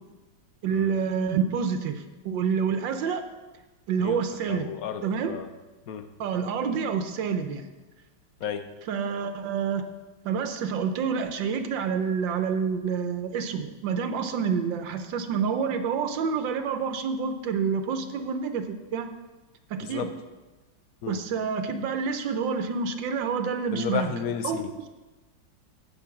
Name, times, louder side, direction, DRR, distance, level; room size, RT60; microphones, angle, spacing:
voice 1, 0.6-3.2 3.9-4.7 5.0-5.4 6.2-7.6 8.9-9.8 10.2-19.1 19.7-20.1 21.1-24.1 24.4-24.6, right 6 dB, 85° right, 8 dB, 1.5 m, -28 dB
voice 2, 4.5-5.0 5.3-5.5 5.9-6.1 8.4-8.7 19.8-20.1 21.0-21.2 23.7-24.9, left 7 dB, 60° left, 9 dB, 1.1 m, -32 dB
15.0 x 5.4 x 5.9 m, 1.2 s
omnidirectional pair, 2.0 m